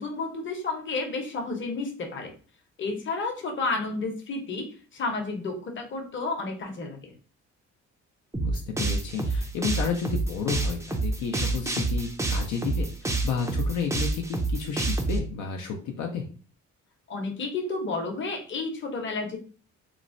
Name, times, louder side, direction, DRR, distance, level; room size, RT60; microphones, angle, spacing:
voice 1, 0.0-2.3 2.8-4.7 4.9-7.1 17.1-19.4, left 3 dB, 40° left, 2 dB, 0.8 m, -31 dB
sound 1, 8.3-15.2, right 3 dB, 10° right, 0.4 m, -27 dB
voice 2, 8.4-16.3, left 6 dB, 75° left, 1 dB, 0.6 m, -31 dB
3.0 x 2.0 x 2.5 m, 0.39 s
cardioid pair, 90°, 30 cm